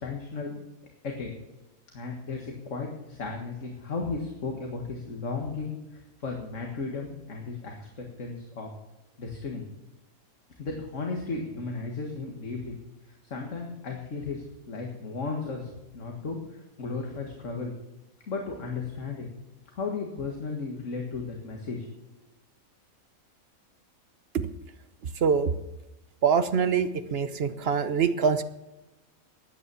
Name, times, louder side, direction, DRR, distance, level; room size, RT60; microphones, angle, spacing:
voice 1, 0.0-0.6 1.0-1.3 1.9-5.8 6.2-7.8 8.2-8.7 9.2-9.6 10.6-12.8 13.3-15.7 15.9-17.7 18.3-19.3 19.7-21.9, left 4 dB, 60° left, 1 dB, 2.1 m, -34 dB
voice 2, 25.2-25.5 26.2-28.4, right 6 dB, 50° right, 11 dB, 0.9 m, -24 dB
13.0 x 9.7 x 7.0 m, 1.0 s
omnidirectional pair, 1.5 m